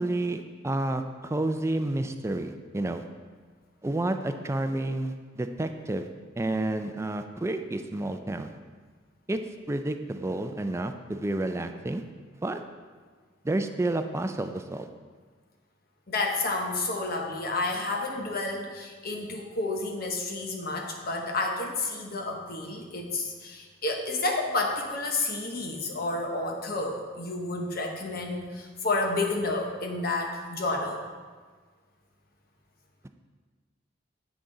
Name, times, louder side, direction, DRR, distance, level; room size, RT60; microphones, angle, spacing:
voice 1, 0.0-3.0 3.8-6.1 6.4-8.5 9.3-9.4 9.7-12.0 12.3-12.6 13.4-14.9, right 2 dB, 15° right, 8 dB, 0.3 m, -30 dB
voice 2, 16.1-31.0, left 2 dB, 50° left, 2 dB, 1.0 m, -30 dB
8.2 x 6.2 x 3.8 m, 1.5 s
head